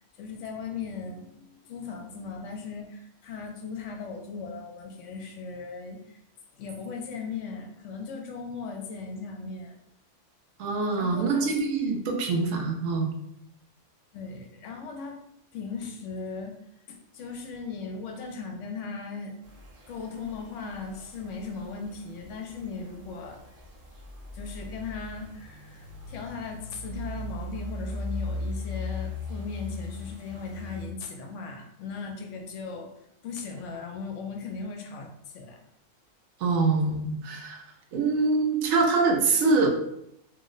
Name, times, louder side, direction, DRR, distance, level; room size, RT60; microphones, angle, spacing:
voice 1, 0.2-6.2 6.5-9.7 11.0-11.5 14.1-15.2 15.5-16.5 16.9-19.3 19.9-23.4 24.3-32.9 33.2-35.6, left 4 dB, 70° left, 3 dB, 0.9 m, -38 dB
voice 2, 10.6-13.1 36.4-37.6 37.9-39.7, right 3 dB, 85° right, 2 dB, 1.0 m, -24 dB
sound 1, 19.4-30.9, left 2 dB, 60° right, 0.9 m, -39 dB
2.7 x 2.1 x 3.7 m, 0.78 s
omnidirectional pair, 1.4 m